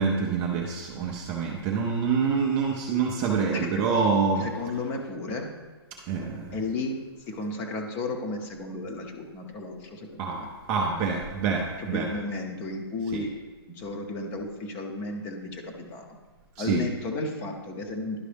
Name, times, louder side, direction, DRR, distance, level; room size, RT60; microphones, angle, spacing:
voice 1, 0.0-4.4 6.1-6.5 10.2-12.1 16.6-16.8, right 5 dB, 15° right, 0 dB, 0.5 m, -26 dB
voice 2, 3.5-3.8 4.4-5.5 6.5-7.0 7.3-10.5 11.8-13.3 13.7-16.2 16.6-18.2, left 2 dB, 15° left, 3 dB, 0.7 m, -33 dB
11.5 x 5.1 x 3.4 m, 1.3 s
hypercardioid pair, 165°, 13 cm